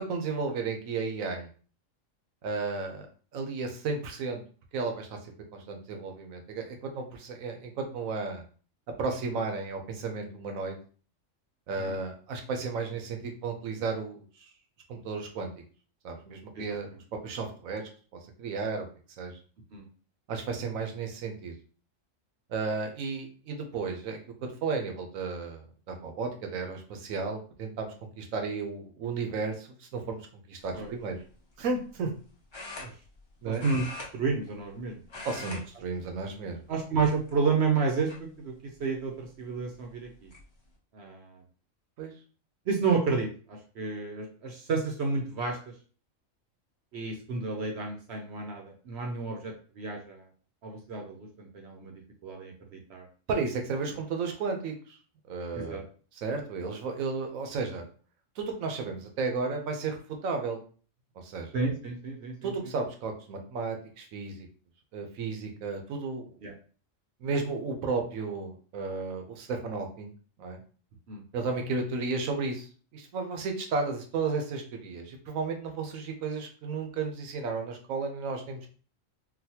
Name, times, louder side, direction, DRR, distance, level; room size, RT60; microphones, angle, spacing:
voice 1, 0.0-1.5 2.4-3.1 3.3-4.4 4.7-5.1 5.5-8.4 9.0-10.8 11.7-14.5 14.9-15.5 16.0-16.9 17.2-17.8 18.1-18.9 19.2-19.4 20.3-21.5 22.5-31.2 31.6-32.1 33.4-33.7 35.2-36.6 42.0-42.1 53.3-55.0 55.3-55.8 56.1-57.9 58.4-60.0 60.2-60.6 61.2-61.5 62.4-64.5 64.9-66.4 67.2-70.1 70.4-70.6 71.3-78.7, right 4 dB, 90° right, 4 dB, 1.1 m, -33 dB
sound 1, 30.6-30.9 32.5-33.3 33.6-34.8 35.0-35.6 35.9-36.2 36.9-37.5 38.1-38.2 39.6-39.7 40.0-40.4, left 2 dB, 25° left, 0.6 m, -42 dB
voice 2, 33.5-33.9 34.1-35.0 35.4-35.6 36.7-40.3 40.9-41.4 42.7-45.7 46.9-50.3 50.6-51.9 52.2-53.1 53.9-54.0 55.5-55.8 61.5-62.5 66.4-66.5 71.1-71.2, right 4 dB, 65° right, 2 dB, 0.8 m, -31 dB
3.9 x 2.2 x 2.7 m, 0.40 s
omnidirectional pair, 1.4 m